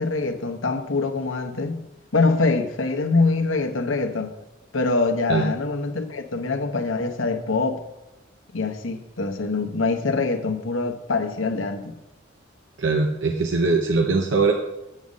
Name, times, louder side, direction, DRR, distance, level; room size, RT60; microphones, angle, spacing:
voice 1, 0.0-1.8 2.1-4.4 4.7-7.8 8.5-12.0, left 3 dB, 80° left, 1.0 m, -24 dB
voice 2, 12.8-14.5, right 3 dB, 65° right, 0.8 m, -21 dB
8.6 x 5.5 x 6.3 m
head